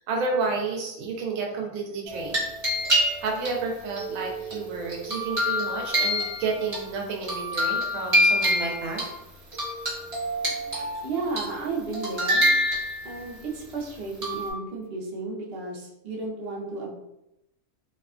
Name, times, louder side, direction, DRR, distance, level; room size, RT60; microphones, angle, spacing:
voice 1, 0.0-2.4 3.2-9.0, right 4 dB, 75° right, 0 dB, 1.0 m, -30 dB
sound 1, 2.1-3.5 4.0-6.8 7.2-9.1 9.5-11.0 11.4-11.6 11.9-13.2 14.2-14.5, equal, 30° right, 1.2 m, -26 dB
voice 2, 10.5-12.5 13.0-16.9, right 3 dB, 55° right, -3 dB, 0.7 m, -33 dB
2.7 x 2.2 x 2.4 m, 0.88 s
omnidirectional pair, 1.5 m